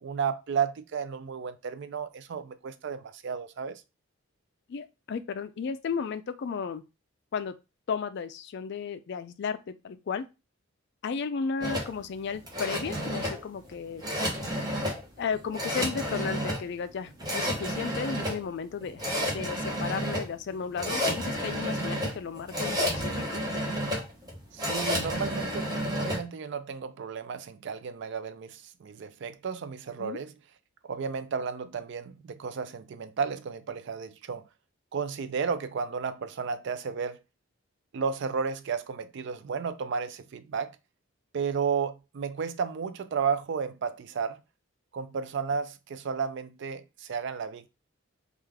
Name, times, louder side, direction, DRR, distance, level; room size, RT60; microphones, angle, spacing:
voice 1, 0.0-3.8 24.5-30.3 30.8-34.4 34.9-37.2 37.9-40.8 41.3-44.4 44.9-47.7, right 6 dB, 55° right, 0.4 m, -33 dB
voice 2, 4.7-6.8 7.3-7.5 7.9-10.3 11.0-14.0 15.2-19.0 19.3-23.4 30.0-30.2, left 6 dB, 55° left, 0.3 m, -34 dB
sound 1, 11.6-26.2, equal, 20° right, 1.0 m, -31 dB
3.2 x 2.4 x 3.4 m
head